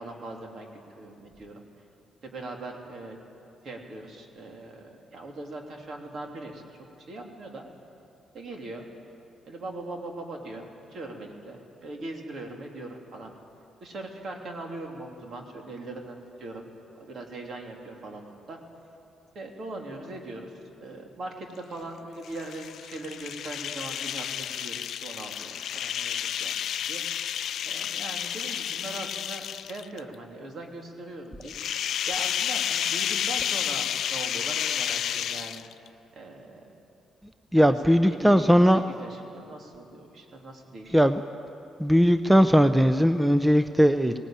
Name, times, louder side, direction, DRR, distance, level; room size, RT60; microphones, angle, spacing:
voice 1, 0.0-1.7 2.2-3.2 3.6-6.6 7.1-7.7 8.3-8.9 9.5-13.3 13.8-16.6 16.9-18.6 19.3-26.5 26.9-27.3 27.6-35.6 36.1-36.7 37.5-41.2, right 2 dB, 55° right, 1 dB, 3.1 m, -40 dB
sound 1, 22.2-30.0 31.4-35.9, left 10 dB, 70° left, 0.4 m, -31 dB
voice 2, 37.5-38.8 40.9-41.2 41.8-44.1, equal, 5° right, 10 dB, 0.6 m, -19 dB
18.5 x 18.0 x 9.0 m, 2.7 s
cardioid pair, 90°, 0 cm